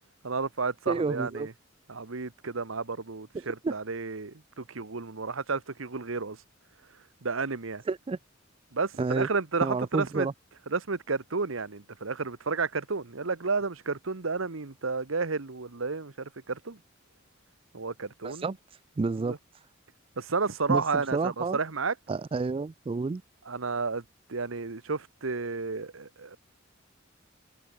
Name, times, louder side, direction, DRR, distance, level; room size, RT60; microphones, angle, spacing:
voice 1, 0.2-1.5 1.9-6.4 7.2-7.8 8.7-10.3 10.7-16.8 17.7-18.5 19.2-19.4 20.2-21.9 23.5-24.0 24.3-26.4, right 4 dB, 85° right, 1.2 m, -32 dB
voice 2, 0.9-1.5 3.6-3.7 7.9-8.2 9.0-9.3 9.6-10.3 18.2-18.5 19.0-19.3 20.7-20.8 21.1-21.6 22.1-23.2, right 4 dB, 25° right, 0.3 m, -29 dB
head